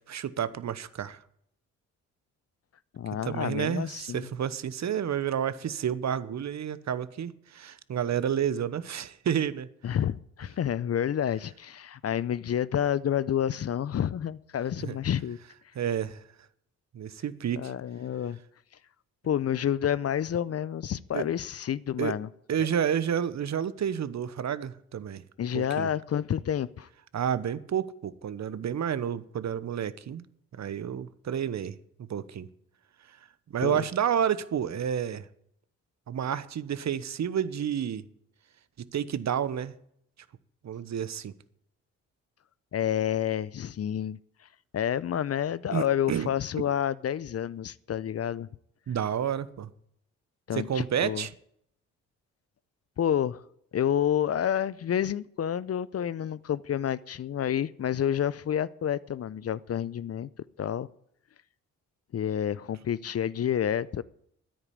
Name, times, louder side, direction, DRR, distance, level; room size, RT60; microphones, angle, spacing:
voice 1, 0.1-1.2 3.2-9.7 14.8-15.0 15.7-16.2 16.9-17.7 21.1-21.2 22.0-22.1 22.5-25.2 25.5-25.9 27.1-30.2 30.6-32.5 33.5-35.3 36.1-38.0 38.9-39.7 40.6-41.3 45.7-46.3 48.9-49.7 50.5-51.3, right 8 dB, 50° right, 1.0 m, -30 dB
voice 2, 2.9-4.3 9.8-15.4 17.6-18.4 19.2-22.3 22.6-22.7 25.4-26.9 33.6-33.8 42.7-44.2 44.7-48.5 50.5-51.3 53.0-53.4 53.7-60.3 60.6-60.9 62.1-64.0, left 9 dB, 45° left, 0.6 m, -29 dB
9.9 x 8.9 x 9.9 m
hypercardioid pair, 50°, 35 cm